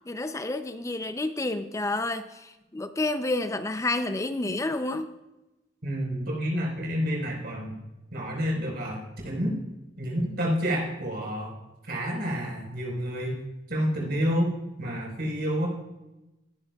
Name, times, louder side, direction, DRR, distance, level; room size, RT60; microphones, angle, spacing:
voice 1, 0.1-5.1, left 2 dB, 15° left, 10 dB, 0.4 m, -30 dB
voice 2, 5.8-7.7 8.1-9.0 9.2-9.6 10.0-11.5 11.9-13.4 13.7-14.5 14.8-15.7, equal, 60° right, -2 dB, 4.4 m, -29 dB
19.5 x 10.5 x 2.3 m, 1.0 s
head